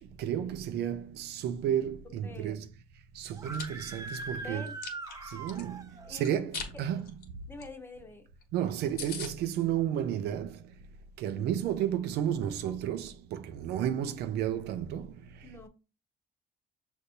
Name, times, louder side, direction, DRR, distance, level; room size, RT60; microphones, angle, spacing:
voice 1, 0.0-2.7 3.1-4.7 5.2-7.1 8.5-10.6 11.2-15.2, right 10 dB, 75° right, 0.5 m, -32 dB
voice 2, 2.2-2.6 4.4-4.8 6.0-6.3 6.7-7.0 7.5-8.3 15.4-15.7, left 2 dB, 15° left, 0.9 m, -46 dB
Chewing mastication, 3.3-3.6 4.1-5.6 6.2-6.7 7.0-7.2 7.6-7.7 7.9-8.0 8.4-8.5 8.7-8.8 9.0-9.3, left 5 dB, 65° left, 1.2 m, -40 dB
Screaming, 3.3-6.1, right 3 dB, 20° right, 0.6 m, -41 dB
6.6 x 2.8 x 2.7 m
cardioid pair, 110°, 17 cm